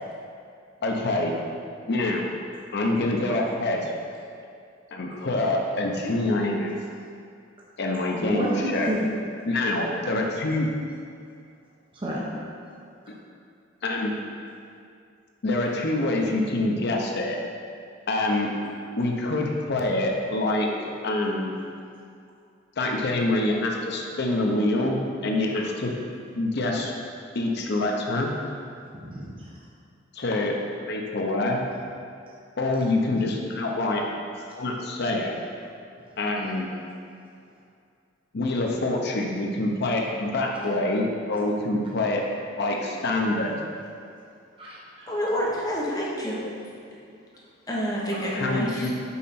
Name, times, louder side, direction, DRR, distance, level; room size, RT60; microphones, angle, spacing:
voice 1, 0.8-1.3 1.9-2.3 2.7-3.9 4.9-6.7 7.8-8.9 9.5-10.7 13.8-14.1 15.4-17.4 18.1-18.5 19.0-20.7 21.0-21.5 22.8-25.9 26.4-26.9 27.3-28.3 30.1-31.6 32.6-34.0 34.6-35.4 36.2-36.7 38.3-42.2 42.6-43.6 48.3-48.9, left 2 dB, 60° left, 0 dB, 0.7 m, -25 dB
voice 2, 8.3-9.1 11.9-12.2 28.9-29.5 32.7-32.8 44.6-45.2 48.2-48.3, equal, 30° right, -6 dB, 0.7 m, -30 dB
voice 3, 45.1-46.4 46.9-47.0 47.7-48.9, equal, 20° left, -5 dB, 1.0 m, -28 dB
5.6 x 4.2 x 4.2 m, 2.4 s
head